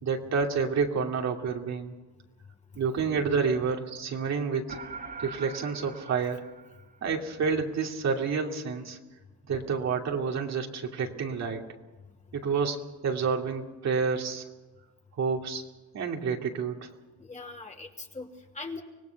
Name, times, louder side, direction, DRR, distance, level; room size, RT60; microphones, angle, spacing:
voice 1, 0.0-1.9 2.8-4.8 5.2-6.4 7.0-9.0 9.5-11.6 12.3-14.4 15.2-15.6 15.9-16.9, right 5 dB, 60° right, 2 dB, 2.8 m, -29 dB
sound 1, 4.7-7.3, right 4 dB, 30° right, 2.8 m, -43 dB
voice 2, 17.2-18.8, left 3 dB, 25° left, 2 dB, 2.9 m, -41 dB
25.0 x 18.5 x 6.0 m, 1.2 s
cardioid pair, 90°, 30 cm